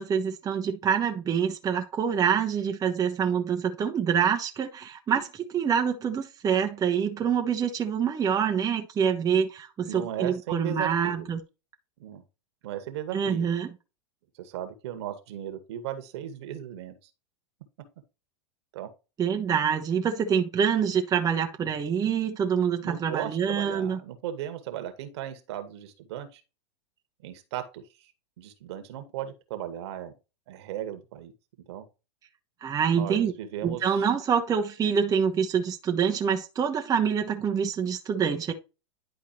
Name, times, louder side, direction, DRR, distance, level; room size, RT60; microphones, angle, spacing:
voice 1, 0.0-11.4 13.1-13.7 19.2-24.0 32.6-33.3 33.6-38.5, right 7 dB, 25° right, 1.0 m, -26 dB
voice 2, 9.9-11.3 12.0-12.2 12.6-13.5 14.4-16.9 18.7-18.9 22.8-26.4 27.2-28.1 28.4-30.1 30.5-31.3 31.7-31.8 32.9-34.1, right 11 dB, 60° right, 1.7 m, -36 dB
10.5 x 4.6 x 3.0 m
hypercardioid pair, 105°, 16 cm